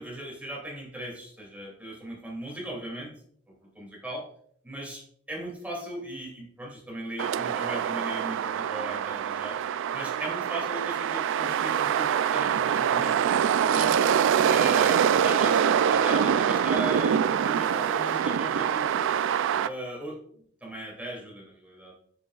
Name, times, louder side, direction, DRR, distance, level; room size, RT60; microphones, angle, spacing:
voice 1, 0.0-3.1 3.7-4.2 4.6-5.0 5.3-9.6 9.9-13.1 13.7-13.9 14.5-18.8 19.6-20.2 20.6-21.9, right 1 dB, 5° right, -3 dB, 2.5 m, -37 dB
sound 1, 7.2-19.7, right 8 dB, 60° right, 0.3 m, -24 dB
7.6 x 7.2 x 2.3 m, 0.63 s
head